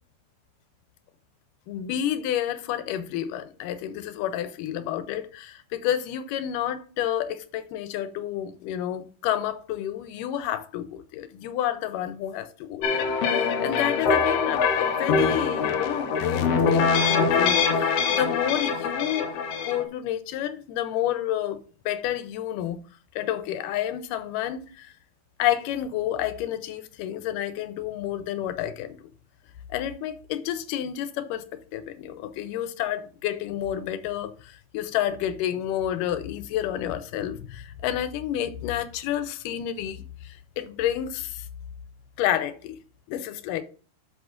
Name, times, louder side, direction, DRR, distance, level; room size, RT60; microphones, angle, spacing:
voice 1, 1.7-19.3 19.6-21.6 21.9-22.8 23.2-24.9 25.4-29.0 29.7-31.4 31.7-41.5 42.2-42.8 43.1-43.6, left 11 dB, 90° left, 2.3 m, -30 dB
sound 1, 12.8-19.8, left 5 dB, 65° left, 1.7 m, -23 dB
12.5 x 5.4 x 2.5 m
omnidirectional pair, 3.7 m